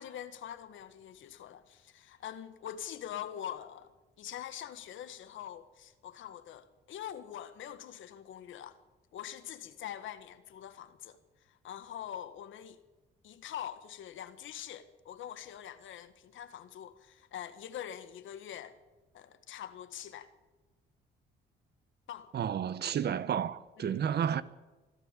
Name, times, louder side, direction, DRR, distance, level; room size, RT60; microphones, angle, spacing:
voice 1, 0.0-8.8 9.1-12.8 13.2-18.8 19.1-20.3 22.1-22.3 23.8-24.0, left 10 dB, 75° left, 1.6 m, -44 dB
voice 2, 22.3-24.4, right 8 dB, 55° right, 1.0 m, -31 dB
24.0 x 13.0 x 8.5 m
cardioid pair, 90°, 20 cm